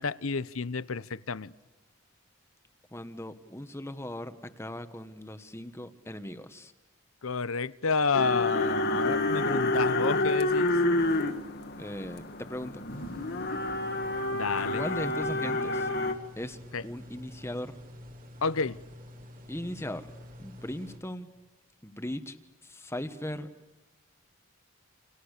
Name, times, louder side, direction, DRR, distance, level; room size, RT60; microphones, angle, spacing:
voice 1, 0.0-1.5 7.2-10.8 14.3-14.8 16.7-16.8 18.4-18.8, left 4 dB, 80° left, 0.8 m, -30 dB
voice 2, 2.9-6.7 11.8-12.8 14.8-15.9 16.4-16.6 16.8-17.8 19.5-20.1 20.4-21.3 21.8-22.4 22.6-23.5, left 1 dB, 10° left, 1.4 m, -38 dB
sound 1, 8.1-16.1, left 2 dB, 50° left, 1.9 m, -28 dB
sound 2, 12.9-21.0, left 1 dB, 40° right, 2.6 m, -48 dB
30.0 x 28.0 x 6.7 m
head